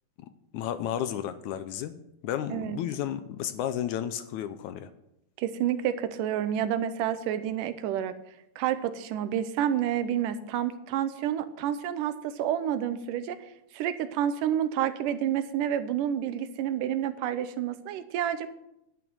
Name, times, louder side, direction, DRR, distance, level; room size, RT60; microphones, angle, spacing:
voice 1, 0.5-4.9, left 10 dB, 80° left, 11 dB, 1.9 m, -33 dB
voice 2, 5.4-8.1 8.6-13.4 13.7-18.5, right 10 dB, 80° right, 11 dB, 2.4 m, -29 dB
11.0 x 9.0 x 6.2 m, 0.82 s
omnidirectional pair, 3.8 m